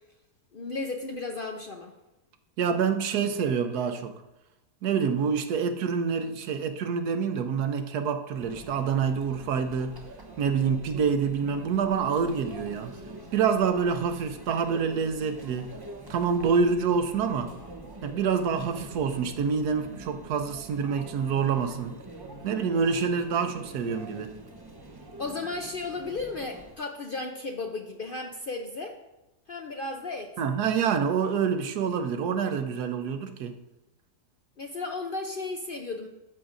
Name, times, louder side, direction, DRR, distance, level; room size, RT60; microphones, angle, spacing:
voice 1, 0.5-2.0 25.2-29.0 29.5-30.3 34.6-36.1, left 3 dB, 55° left, 0.6 m, -34 dB
voice 2, 2.6-4.1 4.8-10.0 10.4-13.0 13.3-15.7 16.1-17.5 18.0-22.0 22.4-24.3 30.4-33.6, right 6 dB, 85° right, 1.3 m, -27 dB
Conversation / Chatter / Crowd, 8.3-26.8, right 1 dB, 20° right, 0.7 m, -45 dB
13.0 x 6.8 x 2.6 m
omnidirectional pair, 1.6 m